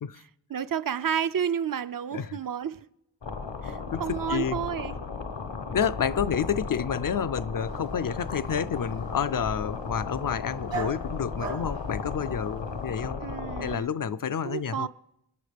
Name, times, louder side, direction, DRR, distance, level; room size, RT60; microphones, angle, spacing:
voice 1, 0.5-2.9 3.6-4.9 13.2-13.9 14.4-14.9, right 8 dB, 50° right, 0.5 m, -31 dB
sound 1, 3.2-13.8, left 4 dB, 70° left, 1.0 m, -35 dB
voice 2, 3.9-4.6 5.7-13.2 13.6-14.9, left 7 dB, 50° left, 0.5 m, -29 dB
Dog, 7.6-12.9, right 3 dB, 75° right, 2.6 m, -42 dB
27.5 x 9.9 x 3.4 m
wide cardioid pair, 50°, 44 cm